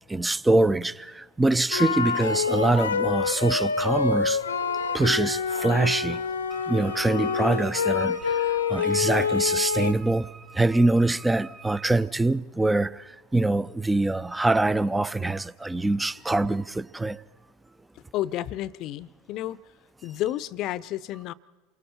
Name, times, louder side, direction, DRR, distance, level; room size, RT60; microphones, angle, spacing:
voice 1, 0.1-4.4 4.9-6.2 6.7-10.3 10.5-17.2, right 2 dB, 10° right, 0.6 m, -24 dB
sound 1, 1.7-9.9, left 5 dB, 85° left, 0.9 m, -26 dB
Wind instrument woodwind instrument, 6.5-12.0, right 5 dB, 30° right, 2.8 m, -48 dB
voice 2, 18.0-19.6 20.0-21.3, left 13 dB, 50° left, 0.7 m, -31 dB
28.5 x 23.0 x 4.3 m
figure-of-eight pair, 80°, 0 cm